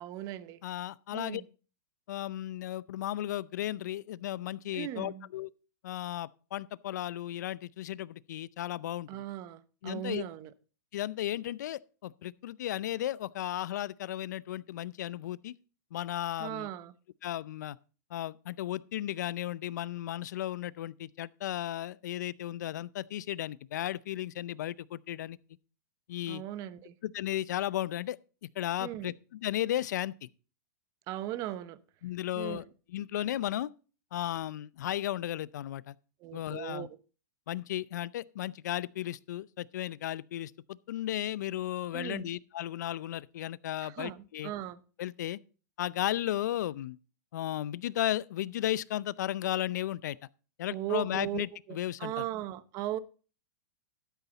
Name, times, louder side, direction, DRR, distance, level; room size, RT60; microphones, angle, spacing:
voice 1, 0.0-0.6 1.1-1.4 4.7-5.3 9.1-10.5 16.4-16.9 26.3-26.9 28.8-29.1 31.1-31.8 32.4-32.6 36.2-36.9 41.9-42.3 43.8-44.8 50.7-53.0, right 13 dB, 35° right, 0.8 m, -38 dB
voice 2, 0.6-1.4 2.1-5.5 5.8-9.1 9.8-10.2 10.9-15.5 15.9-16.7 17.2-17.8 18.1-25.4 26.1-26.4 27.0-28.2 28.6-30.3 32.0-33.7 34.1-35.9 36.3-36.9 37.5-44.5 45.0-45.4 45.8-47.0 47.3-50.2 50.6-52.2, left 13 dB, 75° left, 0.5 m, -35 dB
12.5 x 8.3 x 3.9 m
hypercardioid pair, 135°, 10 cm